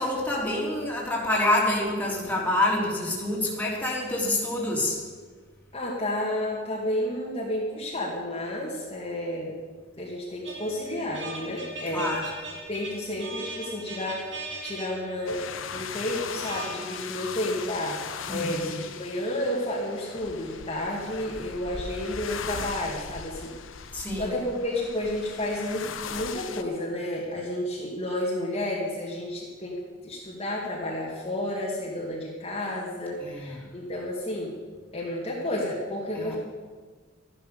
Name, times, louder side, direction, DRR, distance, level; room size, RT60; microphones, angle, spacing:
voice 1, 0.0-5.0 11.9-12.3 18.3-18.8 23.9-24.3 33.2-33.7 36.1-36.4, left 1 dB, 10° left, -4 dB, 3.2 m, -27 dB
voice 2, 5.7-9.5 10.0-12.1 12.7-14.2 14.6-15.4 15.7-18.0 18.3-23.5 24.2-34.5 34.9-36.4, left 1 dB, 30° left, -4 dB, 2.3 m, -31 dB
sound 1, 10.4-16.7, right 2 dB, 65° right, 2.5 m, -40 dB
sound 2, 15.3-26.6, left 6 dB, 85° left, 0.9 m, -38 dB
13.5 x 11.0 x 7.0 m, 1.5 s
head